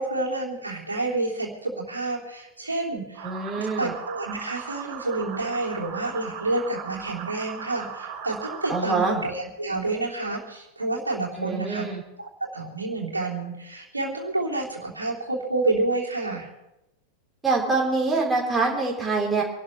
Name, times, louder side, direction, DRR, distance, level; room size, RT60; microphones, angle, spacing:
voice 1, 0.0-3.3 3.5-11.9 12.2-16.5, right 2 dB, 80° right, -2 dB, 3.2 m, -29 dB
sound 1, 3.1-8.8, right 7 dB, 45° right, 3.7 m, -38 dB
voice 2, 3.2-3.9 8.7-9.2 11.4-12.0 17.4-19.4, right 3 dB, 10° right, -3 dB, 4.1 m, -25 dB
26.5 x 12.5 x 3.3 m, 0.93 s
figure-of-eight pair, 90°, 0 cm